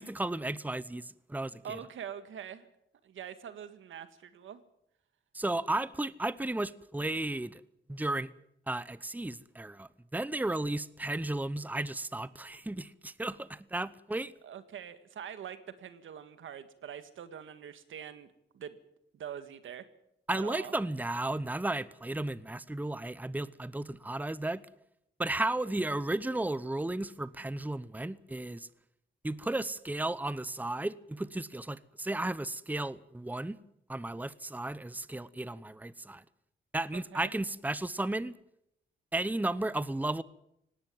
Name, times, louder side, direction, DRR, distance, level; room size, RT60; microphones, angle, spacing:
voice 1, 0.0-1.8 5.3-7.6 7.9-8.3 8.7-14.3 20.3-24.6 25.2-28.7 29.2-33.6 33.9-36.2 36.7-38.3 39.1-40.2, right 2 dB, 10° right, 0.9 m, -34 dB
voice 2, 1.6-2.7 3.0-4.6 14.4-18.8 19.1-19.8 20.3-20.7 36.9-37.3, right 8 dB, 85° right, 1.8 m, -44 dB
18.5 x 17.0 x 9.3 m
cardioid pair, 70°, 20 cm